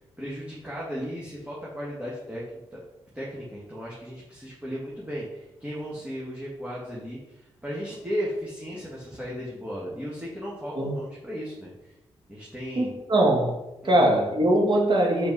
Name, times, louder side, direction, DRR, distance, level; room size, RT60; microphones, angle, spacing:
voice 1, 0.2-2.4 2.7-2.8 3.1-11.9 12.3-12.9 13.8-14.1, equal, 10° right, -6 dB, 2.0 m, -35 dB
voice 2, 12.8-13.6 13.8-15.3, right 1 dB, 50° right, 1 dB, 1.8 m, -21 dB
5.4 x 4.6 x 4.8 m, 0.99 s
cardioid pair, 60°, 11 cm